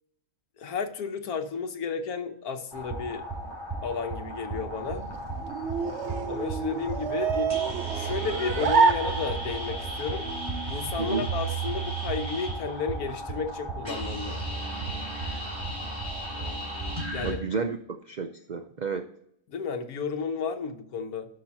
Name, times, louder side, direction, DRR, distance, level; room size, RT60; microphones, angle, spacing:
voice 1, 0.6-3.2 3.8-5.0 6.3-7.5 7.9-10.3 10.7-14.4 17.1-17.4 19.5-21.3, left 5 dB, 80° left, 6 dB, 1.5 m, -32 dB
sound 1, 2.7-17.3, right 2 dB, 15° right, 3.3 m, -34 dB
sound 2, 4.7-9.8, right 5 dB, 55° right, 1.0 m, -28 dB
voice 2, 17.2-19.1, right 5 dB, 75° right, 8 dB, 0.4 m, -31 dB
11.5 x 6.2 x 4.2 m, 0.72 s
omnidirectional pair, 1.5 m